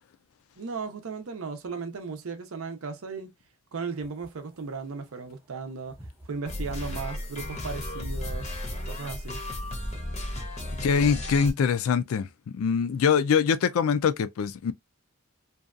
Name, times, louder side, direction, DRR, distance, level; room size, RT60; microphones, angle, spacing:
voice 1, 0.6-3.3 3.7-6.0 6.3-8.6 8.9-9.4, right 4 dB, 75° right, 0.6 m, -36 dB
sound 1, 3.9-8.8, equal, 10° right, 0.6 m, -47 dB
sound 2, 6.5-11.5, left 1 dB, 30° left, 0.6 m, -34 dB
voice 2, 10.8-14.7, left 6 dB, 75° left, 0.3 m, -24 dB
2.6 x 2.3 x 2.3 m
head